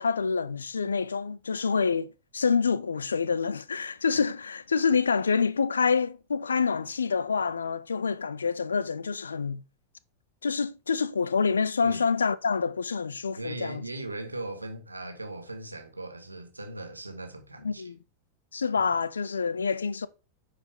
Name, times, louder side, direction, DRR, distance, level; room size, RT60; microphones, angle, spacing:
voice 1, 0.0-2.1 2.3-9.6 10.4-13.8 17.6-18.0 18.5-20.1, left 5 dB, 75° left, 0.4 m, -27 dB
voice 2, 13.4-17.9 18.7-18.9, right 2 dB, 80° right, 1.4 m, -39 dB
9.6 x 5.0 x 3.6 m
figure-of-eight pair, 90°, 0 cm